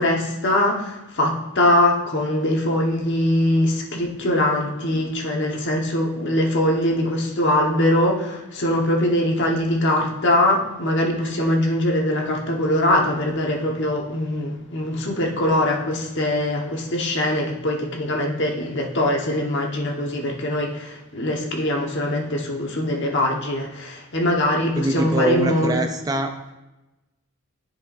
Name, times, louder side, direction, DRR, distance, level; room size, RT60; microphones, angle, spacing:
voice 1, 0.0-25.8, left 1 dB, 55° left, 0 dB, 1.3 m, -22 dB
voice 2, 24.8-26.5, right 1 dB, 15° right, 6 dB, 0.4 m, -24 dB
13.0 x 4.6 x 2.6 m, 1.0 s
head